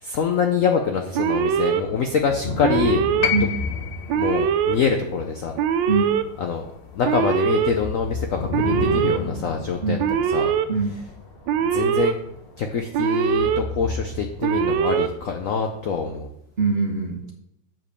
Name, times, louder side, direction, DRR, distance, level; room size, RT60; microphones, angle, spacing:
voice 1, 0.0-3.0 4.1-5.6 6.4-6.7 6.9-10.0 10.3-10.5 11.6-12.2 12.6-16.3, left 6 dB, 85° left, 4 dB, 0.7 m, -25 dB
Alarm, 1.1-1.8 2.6-3.3 4.1-4.8 5.6-6.2 7.0-7.7 8.5-9.2 10.0-10.6 11.5-12.1 12.9-13.6 14.4-15.1, right 8 dB, 70° right, 1.2 m, -22 dB
sound 1, 1.3-16.2, left 3 dB, 40° left, 0.9 m, -34 dB
sound 2, 3.2-7.4 8.6-8.7, left 10 dB, 65° left, 1.2 m, -31 dB
voice 2, 5.9-6.2 9.8-10.0 10.7-11.0 16.6-17.3, right 4 dB, 35° right, 1 dB, 1.1 m, -23 dB
7.6 x 5.0 x 6.9 m, 0.82 s
omnidirectional pair, 2.3 m